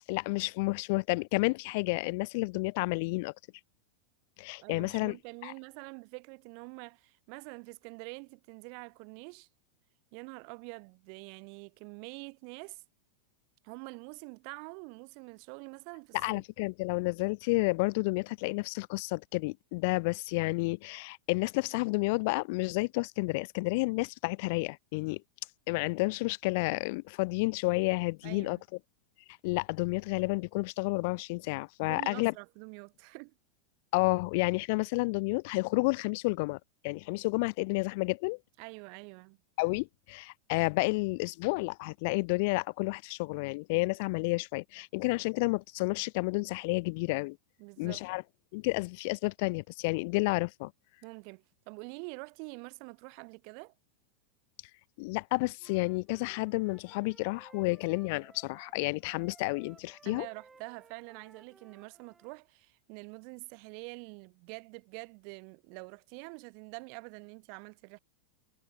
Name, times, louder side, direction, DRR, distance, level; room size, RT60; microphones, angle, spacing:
voice 1, 0.1-3.3 4.4-5.2 5.4-5.5 16.1-25.2 25.7-28.6 29.4-32.3 33.9-36.6 36.8-38.4 39.6-47.4 47.8-48.2 48.5-50.7 55.0-60.3, left 27 dB, 50° left, 0.7 m, -30 dB
voice 2, 4.6-9.5 10.1-12.8 13.6-16.4 28.2-28.6 31.8-33.3 38.6-39.4 47.6-48.0 51.0-53.7 60.0-68.0, right 40 dB or more, 45° right, 2.4 m, -46 dB
Wind instrument woodwind instrument, 55.6-62.4, right 4 dB, 15° right, 4.7 m, -60 dB
figure-of-eight pair, 90°, 0 cm